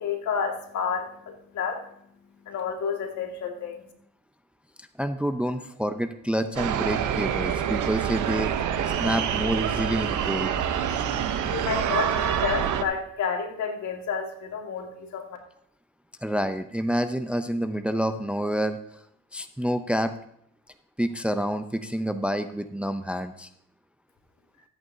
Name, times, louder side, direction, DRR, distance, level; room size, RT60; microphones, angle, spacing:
voice 1, 0.0-1.8 2.5-3.8 11.5-15.2, left 6 dB, 70° left, 2 dB, 2.1 m, -30 dB
voice 2, 5.0-8.5 9.0-10.5 16.2-19.0 19.3-20.1 21.0-23.5, equal, 5° right, 9 dB, 0.5 m, -28 dB
sound 1, 6.6-12.8, right 9 dB, 75° right, 0.9 m, -26 dB
14.5 x 8.5 x 2.7 m, 0.72 s
cardioid pair, 90°, 30 cm